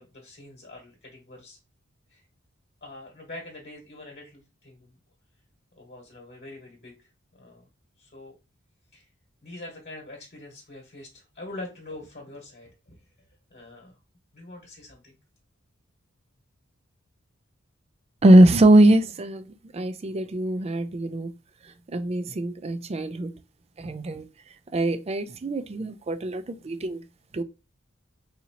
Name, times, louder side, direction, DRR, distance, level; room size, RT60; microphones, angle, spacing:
voice 1, 0.0-1.6 2.1-2.2 2.8-5.0 5.8-7.7 8.0-8.3 8.9-9.1 9.4-12.7 13.5-13.9 14.3-15.2, left 2 dB, 45° left, 1.3 m, -44 dB
voice 2, 18.2-19.5 19.7-21.3 21.9-23.3 23.8-24.3 24.7-27.0 27.3-27.4, right 1 dB, 30° right, 0.4 m, -21 dB
4.1 x 2.7 x 2.8 m
head